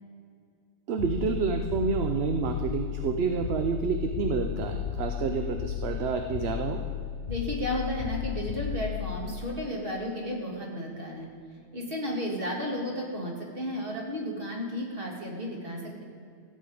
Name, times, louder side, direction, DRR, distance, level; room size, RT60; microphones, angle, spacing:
voice 1, 0.9-6.8, right 5 dB, 70° right, 5 dB, 0.9 m, -29 dB
sound 1, 1.0-10.1, left 11 dB, 65° left, 0.7 m, -34 dB
voice 2, 7.3-11.3 11.7-16.0, left 1 dB, 50° right, -1 dB, 2.4 m, -33 dB
15.0 x 5.5 x 8.5 m, 2.3 s
omnidirectional pair, 1.2 m